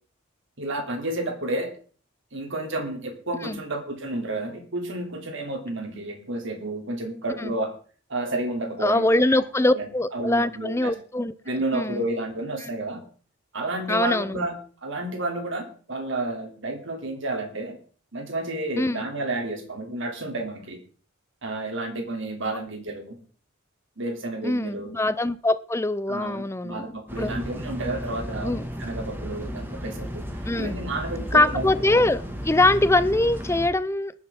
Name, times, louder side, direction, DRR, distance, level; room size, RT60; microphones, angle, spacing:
voice 1, 0.6-1.7 2.3-7.7 8.1-10.9 11.4-13.0 13.5-14.6 14.8-17.8 18.1-20.8 21.4-23.2 24.0-24.9 26.1-30.2 30.6-31.7, right 2 dB, 65° right, 3.1 m, -31 dB
voice 2, 8.8-11.3 11.7-12.0 13.9-14.5 18.8-19.1 24.4-26.8 27.2-27.3 28.4-28.6 30.5-30.7 31.3-34.1, left 2 dB, 15° left, 0.6 m, -23 dB
sound 1, 27.1-33.7, equal, 10° right, 1.8 m, -34 dB
19.5 x 10.0 x 3.7 m
head